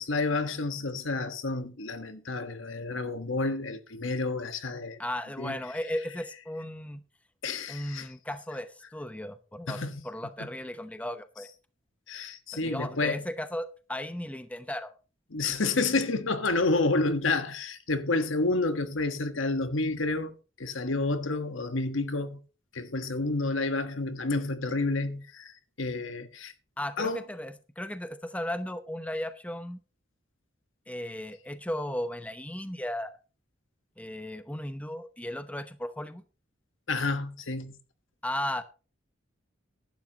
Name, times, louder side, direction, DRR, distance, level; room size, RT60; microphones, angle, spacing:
voice 1, 0.0-5.0 5.4-5.6 7.4-8.1 9.7-10.0 10.4-10.5 12.1-13.2 15.3-22.4 22.7-26.5 27.0-27.2 36.9-37.8, left 3 dB, 75° left, 1.3 m, -30 dB
voice 2, 5.0-7.0 7.7-11.5 12.5-14.9 26.8-29.8 30.9-33.1 34.0-36.2 38.2-38.6, left 1 dB, 5° left, 0.8 m, -35 dB
15.5 x 11.5 x 2.9 m
head